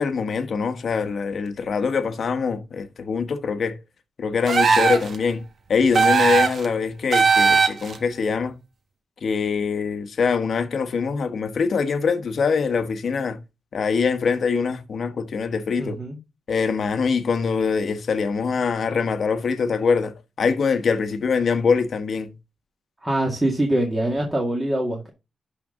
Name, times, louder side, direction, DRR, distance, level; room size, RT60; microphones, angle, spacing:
voice 1, 0.0-3.8 4.2-8.6 9.2-13.4 13.7-16.0 16.5-22.3, left 5 dB, 60° left, 1.2 m, -23 dB
sound 1, 4.5-5.2 5.9-6.7 7.1-8.0, right 5 dB, 55° right, 1.4 m, -18 dB
voice 2, 15.8-16.2 23.0-25.1, right 1 dB, 15° right, 2.0 m, -24 dB
12.0 x 4.3 x 3.7 m
cardioid pair, 105°, 0 cm